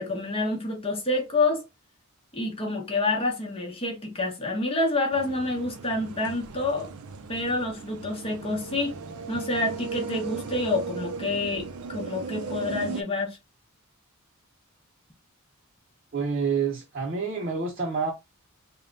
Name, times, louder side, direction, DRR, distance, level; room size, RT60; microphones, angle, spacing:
voice 1, 0.0-1.6 2.3-6.9 7.3-8.9 9.3-13.4, left 2 dB, 25° left, 1.0 m, -28 dB
sound 1, 5.1-13.0, right 5 dB, 80° right, 0.5 m, -37 dB
voice 2, 16.1-18.1, right 5 dB, 40° right, 0.7 m, -28 dB
3.5 x 2.3 x 3.8 m
head